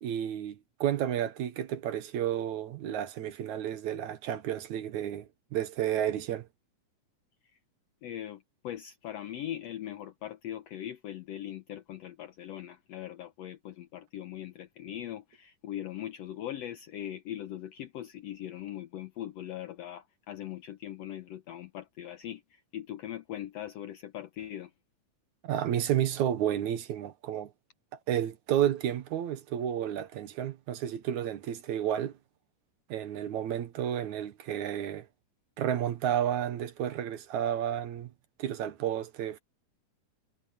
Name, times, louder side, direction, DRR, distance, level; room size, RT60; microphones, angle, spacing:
voice 1, 0.0-6.5 25.4-27.5 28.1-32.1 32.9-35.1 35.6-38.1 38.4-39.4, right 10 dB, 70° right, 2.3 m, -31 dB
voice 2, 8.0-24.7, left 12 dB, 75° left, 1.5 m, -40 dB
omnidirectional pair, 3.8 m